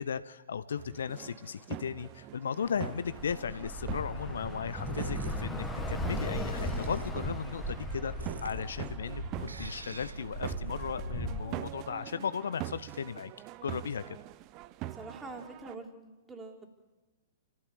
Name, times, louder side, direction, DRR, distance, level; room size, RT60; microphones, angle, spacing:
voice 1, 0.0-13.3 13.6-14.2, left 7 dB, 60° left, 15 dB, 1.0 m, -36 dB
sound 1, 0.8-15.7, right 15 dB, 30° right, 0.8 m, -44 dB
Bus / Traffic noise roadway noise, 2.6-11.4, equal, 5° left, 2.2 m, -37 dB
sound 2, 3.0-11.2, right 5 dB, 75° right, 1.4 m, -47 dB
voice 2, 14.9-16.7, right 2 dB, 10° right, 3 dB, 3.7 m, -45 dB
29.0 x 15.5 x 8.7 m, 1.2 s
figure-of-eight pair, 110°, 0 cm